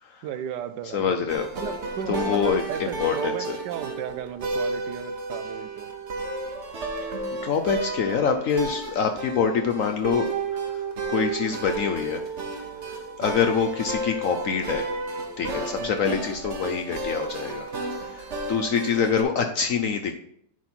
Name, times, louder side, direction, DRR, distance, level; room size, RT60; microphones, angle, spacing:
voice 1, 0.2-1.3 1.5-5.9 13.2-13.3 15.8-16.0 18.5-18.8, right 9 dB, 75° right, 12 dB, 1.2 m, -35 dB
voice 2, 0.9-1.5 2.1-3.6 7.4-10.3 10.7-10.8 11.1-12.2 13.2-14.9 15.4-17.7 18.0-20.1, left 6 dB, 65° left, 5 dB, 0.8 m, -25 dB
sound 1, 1.3-19.2, right 3 dB, 45° right, 1.1 m, -32 dB
10.5 x 4.3 x 4.3 m, 0.70 s
omnidirectional pair, 1.9 m